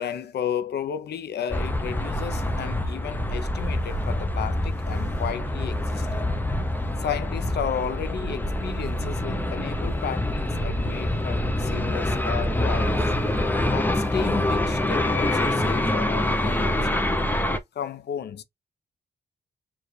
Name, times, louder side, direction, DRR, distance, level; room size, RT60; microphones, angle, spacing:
voice 1, 0.0-6.2 7.0-13.1 13.7-17.2 17.7-18.4, left 8 dB, 80° left, 0.7 m, -33 dB
Earls Court - Aeroplane overhead, 1.5-17.6, left 1 dB, 10° left, 0.6 m, -25 dB
4.7 x 2.5 x 3.2 m
cardioid pair, 85°, 17 cm